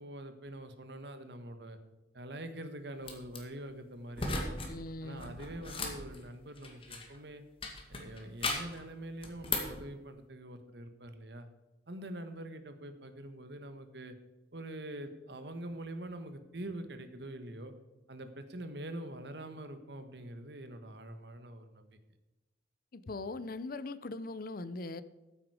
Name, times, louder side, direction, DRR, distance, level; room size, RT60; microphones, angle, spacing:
voice 1, 0.0-1.8 2.1-4.6 5.0-7.4 7.9-11.5 11.9-14.1 14.5-17.7 18.1-21.9, right 1 dB, 65° right, 9 dB, 1.4 m, -44 dB
sound 1, 3.0-3.4 4.1-4.7 5.0-7.2 7.6-8.8 9.2-9.8, left 3 dB, 30° left, 2.1 m, -37 dB
voice 2, 4.6-5.3 22.9-25.0, left 2 dB, 50° left, 15 dB, 0.6 m, -40 dB
14.5 x 8.7 x 4.9 m, 1.1 s
head